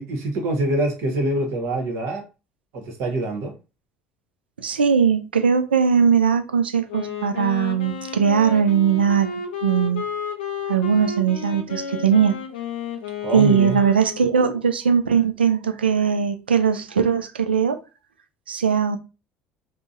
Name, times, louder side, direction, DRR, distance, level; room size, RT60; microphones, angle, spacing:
voice 1, 0.0-2.2 2.7-3.5 13.2-13.8, right 1 dB, 60° right, 1.1 m, -25 dB
voice 2, 4.6-10.1 10.7-12.4 13.3-17.8 18.5-19.0, right 7 dB, 85° right, 0.4 m, -20 dB
Wind instrument woodwind instrument, 6.9-14.5, left 6 dB, 80° left, 0.5 m, -32 dB
3.7 x 2.1 x 2.6 m
hypercardioid pair, 60°, 5 cm